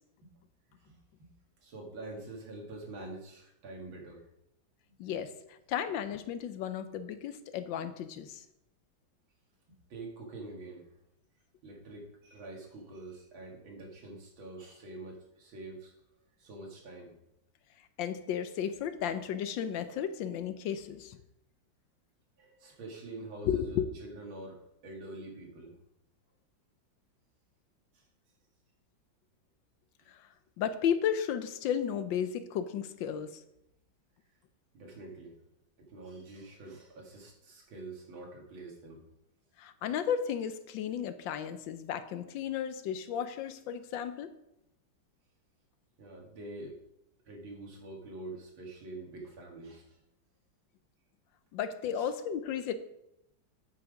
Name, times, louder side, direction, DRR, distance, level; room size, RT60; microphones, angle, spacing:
voice 1, 0.7-1.3 1.6-4.2 5.0-5.1 9.9-10.9 11.6-15.9 16.4-17.2 22.4-24.6 24.8-25.7 27.9-28.0 30.0-30.1 34.7-35.4 35.8-39.0 46.0-46.8 47.2-50.0 51.9-52.1, right 2 dB, 90° right, 0 dB, 2.7 m, -46 dB
voice 2, 5.0-8.4 17.8-21.2 23.4-23.9 30.1-33.4 39.6-44.3 51.5-52.7, left 8 dB, 75° left, 11 dB, 1.3 m, -34 dB
8.4 x 5.9 x 4.9 m, 0.82 s
omnidirectional pair, 2.1 m